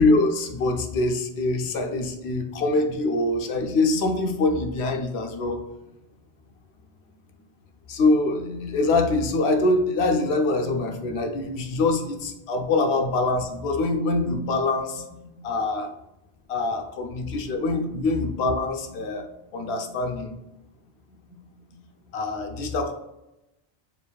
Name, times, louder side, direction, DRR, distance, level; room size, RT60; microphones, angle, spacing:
voice 1, 0.0-5.6 7.9-15.2 15.4-15.9 16.5-19.3 19.5-20.3 22.1-22.9, left 2 dB, 75° left, 4 dB, 0.9 m, -24 dB
6.9 x 2.6 x 2.3 m, 0.90 s
omnidirectional pair, 1.1 m